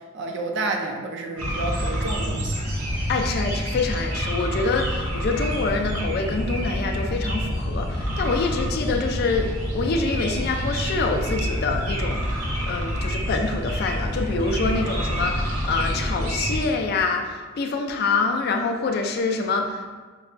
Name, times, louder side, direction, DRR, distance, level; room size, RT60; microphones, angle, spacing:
voice 1, 0.1-2.6, right 2 dB, 55° right, 2 dB, 0.4 m, -30 dB
sound 1, 1.4-16.7, equal, 85° right, 0.8 m, -27 dB
voice 2, 3.1-12.4 12.7-19.9, left 4 dB, 45° left, 4 dB, 0.3 m, -26 dB
5.3 x 2.2 x 2.4 m, 1.4 s
head